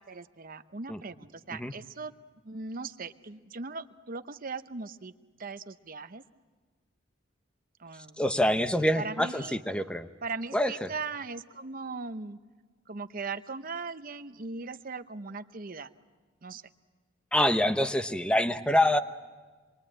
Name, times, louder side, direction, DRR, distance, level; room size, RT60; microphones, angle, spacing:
voice 1, 0.1-2.1 2.4-5.1 5.4-6.2 7.8-8.2 8.9-9.6 10.2-12.4 12.9-15.9 16.4-16.6, right 4 dB, 45° right, 10 dB, 0.9 m, -39 dB
voice 2, 8.2-10.1 10.5-10.9 17.3-19.0, left 1 dB, 5° left, 9 dB, 0.9 m, -26 dB
27.0 x 23.0 x 8.8 m, 1.4 s
head